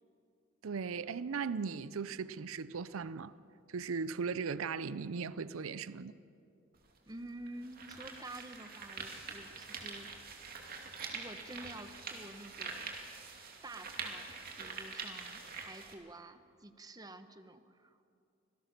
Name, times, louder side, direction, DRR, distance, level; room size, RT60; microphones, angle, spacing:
voice 1, 0.6-3.3 3.7-6.1, right 5 dB, 90° right, 0.5 m, -38 dB
sound 1, 6.7-6.8 7.5-15.9, right 5 dB, 45° right, 2.5 m, -45 dB
voice 2, 7.0-10.1 11.1-13.0 13.6-14.3 14.6-18.0, right 1 dB, 20° right, 0.9 m, -49 dB
25.5 x 18.0 x 6.7 m
head